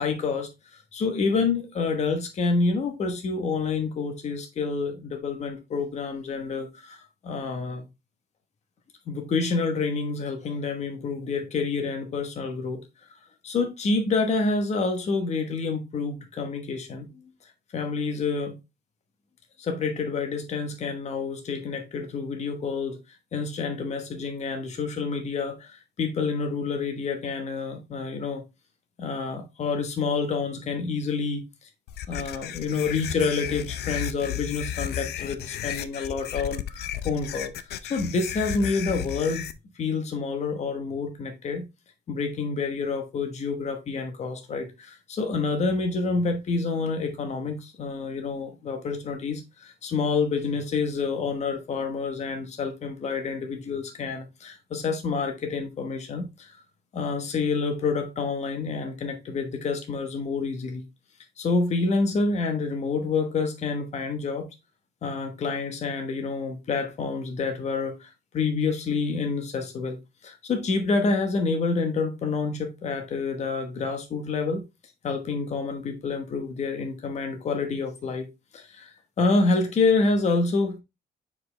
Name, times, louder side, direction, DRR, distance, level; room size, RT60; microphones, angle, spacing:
voice 1, 0.0-7.8 9.1-12.8 13.4-17.3 17.7-18.5 19.6-28.4 29.0-31.4 32.1-39.5 39.7-41.7 42.1-56.6 56.9-60.8 61.4-64.5 65.0-70.0 70.2-74.6 75.0-80.8, left 4 dB, 40° left, 1.1 m, -28 dB
sound 1, 31.9-39.5, left 11 dB, 65° left, 0.6 m, -34 dB
6.0 x 4.9 x 3.3 m
cardioid pair, 165°, 18 cm